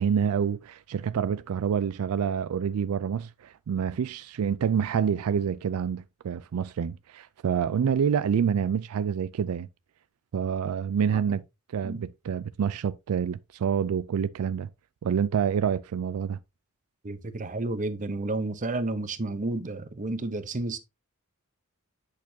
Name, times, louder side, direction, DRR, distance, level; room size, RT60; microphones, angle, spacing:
voice 1, 0.0-9.7 10.3-11.4 11.7-14.7 15.0-16.4, right 7 dB, 80° right, 0.4 m, -27 dB
voice 2, 17.0-20.8, right 2 dB, 35° right, 0.8 m, -31 dB
8.3 x 6.5 x 2.7 m
head